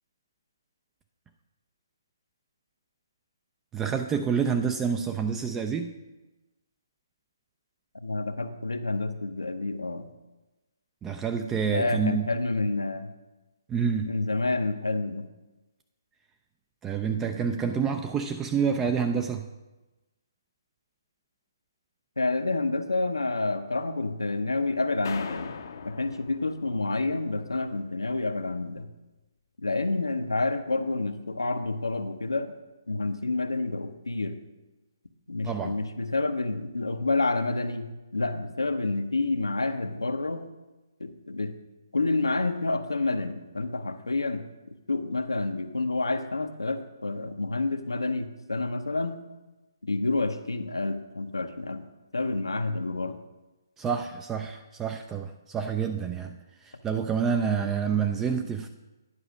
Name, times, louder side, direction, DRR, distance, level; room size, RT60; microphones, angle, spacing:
voice 1, 3.7-6.0 11.0-12.3 13.7-14.2 16.8-19.5 35.4-35.8 53.8-56.4 56.6-58.7, right 6 dB, 10° right, 6 dB, 0.3 m, -28 dB
voice 2, 7.9-10.1 11.7-13.1 14.0-15.3 22.2-25.5 25.8-28.9 29.6-32.5 32.9-34.4 35.3-40.5 41.0-41.5 41.9-49.2 49.8-51.9 52.1-53.2 58.3-58.5, left 3 dB, 80° left, 8 dB, 0.8 m, -29 dB
sound 1, 25.0-27.5, left 5 dB, 50° left, 0.6 m, -40 dB
9.9 x 4.8 x 6.2 m, 1.1 s
figure-of-eight pair, 140°, 2 cm